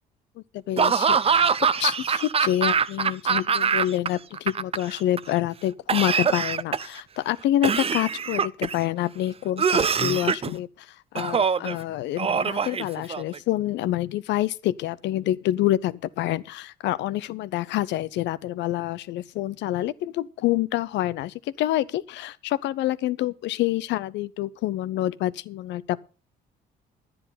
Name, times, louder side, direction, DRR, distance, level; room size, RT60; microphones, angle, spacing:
voice 1, 0.5-26.0, left 14 dB, 75° left, 0.7 m, -27 dB
Laughter / Cough, 0.8-4.1 4.3-5.2 5.9-7.0 7.6-8.8 9.6-10.5 11.2-11.7 12.2-13.4, right 6 dB, 30° right, 0.6 m, -23 dB
11.0 x 9.9 x 5.7 m
supercardioid pair, 70°, 19 cm